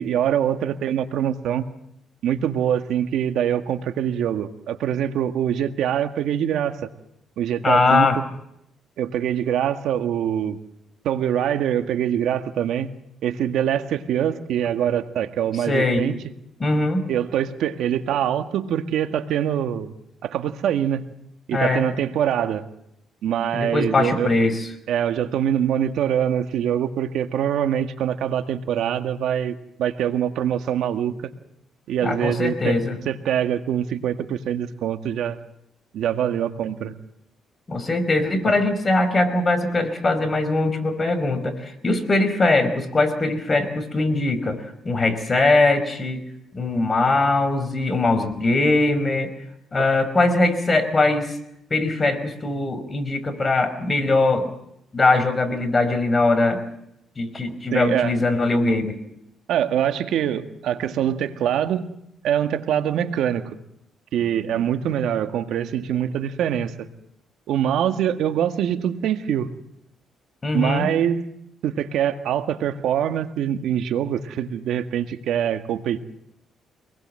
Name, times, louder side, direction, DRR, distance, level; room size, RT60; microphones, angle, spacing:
voice 1, 0.0-1.6 2.2-6.7 7.4-8.1 9.0-10.6 11.0-12.9 13.2-16.2 17.1-19.9 20.2-21.0 21.5-22.6 23.2-24.3 24.9-31.1 31.9-32.8 33.1-35.4 35.9-36.9 38.5-38.6 49.8-49.9 57.7-58.1 59.5-61.9 62.2-63.6 64.1-66.9 67.5-69.5 70.5-71.3 71.6-76.0, right 9 dB, 80° right, 8 dB, 1.8 m, -24 dB
voice 2, 7.6-8.2 15.7-16.1 16.6-17.1 21.5-21.9 23.5-24.7 32.0-33.0 37.7-46.2 46.5-49.3 49.7-51.4 51.7-54.5 54.9-56.6 57.2-59.0 70.4-70.9, left 2 dB, 30° left, 9 dB, 5.0 m, -21 dB
26.5 x 20.0 x 7.7 m, 0.76 s
cardioid pair, 90°, 0 cm